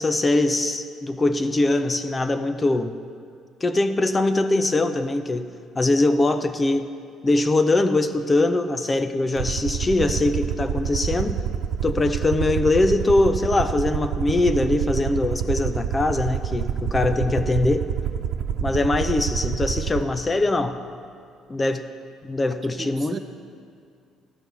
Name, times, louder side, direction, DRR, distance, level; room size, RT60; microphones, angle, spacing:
voice 1, 0.0-3.0 3.6-5.5 5.8-6.9 7.2-11.4 11.8-17.9 18.6-20.8 21.5-21.8 22.2-23.2, left 2 dB, 25° left, 9 dB, 0.6 m, -22 dB
Aircraft, 9.4-20.0, right 8 dB, 75° right, 0.5 m, -27 dB
voice 2, 22.5-23.2, right 5 dB, 40° right, 7 dB, 0.8 m, -36 dB
13.0 x 4.6 x 6.9 m, 2.3 s
hypercardioid pair, 60°, 0 cm